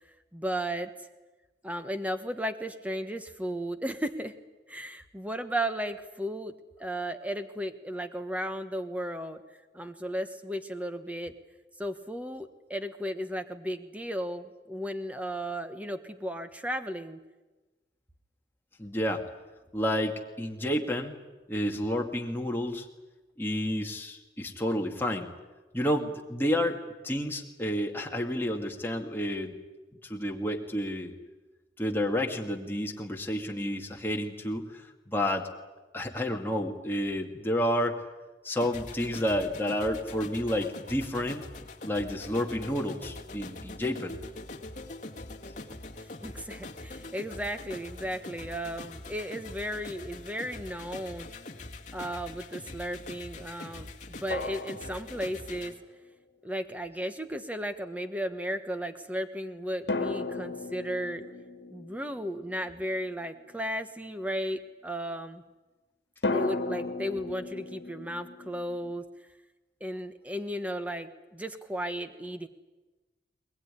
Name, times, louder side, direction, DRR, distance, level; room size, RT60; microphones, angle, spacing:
voice 1, 0.3-0.9 1.6-4.3 4.7-6.5 6.8-9.4 9.7-11.3 11.8-17.2 46.0-51.3 51.9-55.7 56.4-61.2 61.7-65.4 66.2-69.0 69.8-72.5, equal, 10° right, 9 dB, 1.3 m, -35 dB
voice 2, 18.8-19.2 19.7-21.2 21.5-22.9 23.4-25.3 25.7-29.5 30.0-31.1 31.8-34.8 35.1-35.5 35.9-38.0 38.4-41.5 41.8-44.2, equal, 10° left, 1 dB, 2.1 m, -30 dB
sound 1, 38.6-55.7, left 2 dB, 40° left, 1.9 m, -43 dB
sound 2, 50.7-50.8 54.3-55.8 59.9-63.5 66.2-69.0, left 3 dB, 65° left, 1.9 m, -36 dB
21.5 x 21.0 x 10.0 m, 1.2 s
head